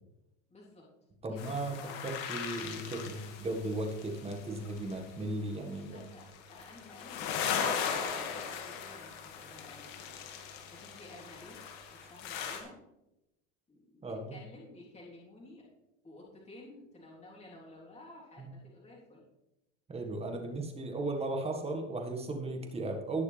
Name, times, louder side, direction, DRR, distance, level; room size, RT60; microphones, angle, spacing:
voice 1, 0.5-0.8 1.3-2.2 5.7-12.8 13.7-15.7 16.0-19.2, left 1 dB, 15° left, -5 dB, 3.5 m, -53 dB
voice 2, 1.2-6.0 12.0-12.1 14.0-14.3 18.4-18.5 19.9-23.2, right 2 dB, 15° right, 3 dB, 1.7 m, -36 dB
sound 1, 1.4-5.2 5.8-12.6, left 7 dB, 60° left, 2.1 m, -38 dB
19.0 x 6.4 x 3.4 m, 0.91 s
supercardioid pair, 140°, 38 cm